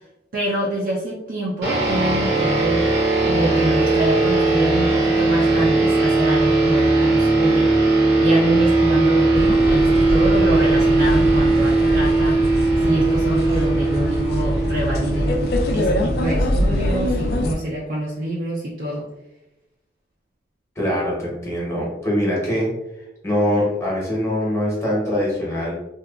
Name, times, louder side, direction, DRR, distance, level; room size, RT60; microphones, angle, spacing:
voice 1, 0.3-2.8 3.2-7.8 8.2-12.5 12.8-19.1, right 1 dB, 50° right, -4 dB, 0.4 m, -26 dB
sound 1, 1.6-16.4, right 2 dB, 70° right, 0.8 m, -19 dB
sound 2, 9.3-17.5, equal, 60° left, 0.3 m, -24 dB
voice 2, 20.8-22.7 23.2-25.7, left 1 dB, 15° left, -5 dB, 0.8 m, -23 dB
2.8 x 2.2 x 2.3 m, 0.91 s
head